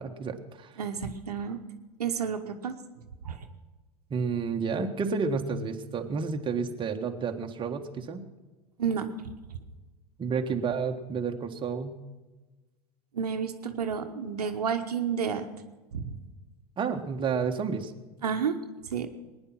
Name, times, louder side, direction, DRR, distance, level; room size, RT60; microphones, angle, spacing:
voice 1, 0.0-0.7 4.1-8.2 10.2-12.0 16.8-17.9, right 5 dB, 25° right, 4 dB, 1.5 m, -30 dB
voice 2, 0.8-1.6 2.0-2.8 3.2-3.4 8.8-9.1 13.1-15.5 15.9-16.2 18.2-18.6 18.9-19.1, right 7 dB, 80° right, 6 dB, 1.2 m, -30 dB
20.0 x 10.0 x 6.0 m, 1.2 s
hypercardioid pair, 85°, 20 cm